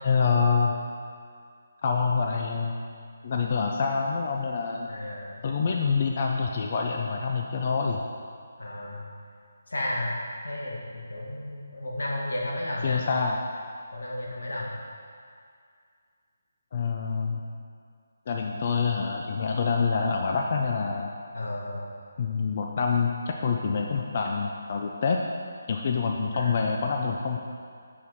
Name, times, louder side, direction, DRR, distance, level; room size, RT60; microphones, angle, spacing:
voice 1, 0.0-0.8 1.8-2.8 3.2-4.9 5.4-8.0 12.8-13.4 16.7-17.4 18.3-21.1 22.2-25.2 25.7-27.4, left 5 dB, 40° left, 1 dB, 0.4 m, -26 dB
voice 2, 4.9-5.4 8.6-9.0 9.7-10.1 10.4-13.0 13.9-14.8 21.3-21.9 26.3-26.6, left 1 dB, 85° left, -3 dB, 1.5 m, -33 dB
7.3 x 4.4 x 4.1 m, 2.2 s
hypercardioid pair, 165°, 0 cm